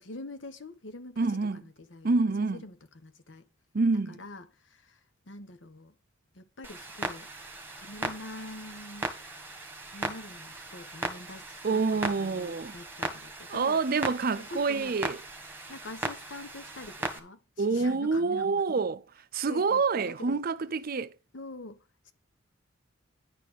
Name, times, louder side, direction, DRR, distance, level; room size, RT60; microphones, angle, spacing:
voice 1, 0.0-2.1 2.4-3.5 4.1-5.0 5.3-5.9 6.3-7.3 7.8-9.1 9.9-13.8 14.3-14.9 15.7-18.8 19.4-20.4 21.3-22.1, left 2 dB, 65° left, 1.2 m, -45 dB
voice 2, 1.2-1.6 2.0-2.6 3.7-4.2 11.6-12.7 13.5-15.2 17.6-19.0 19.3-21.1, right 4 dB, 50° right, 0.5 m, -27 dB
Clock, 6.6-17.2, right 2 dB, 10° right, 1.6 m, -38 dB
10.5 x 4.2 x 7.2 m
head